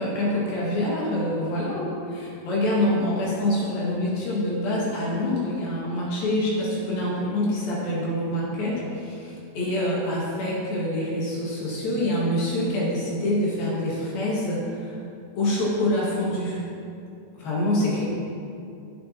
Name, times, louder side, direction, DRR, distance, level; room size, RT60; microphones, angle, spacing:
voice 1, 0.0-15.0 15.4-16.6 17.3-18.0, left 1 dB, 70° left, -6 dB, 3.7 m, -26 dB
16.0 x 8.4 x 3.0 m, 2.5 s
omnidirectional pair, 4.4 m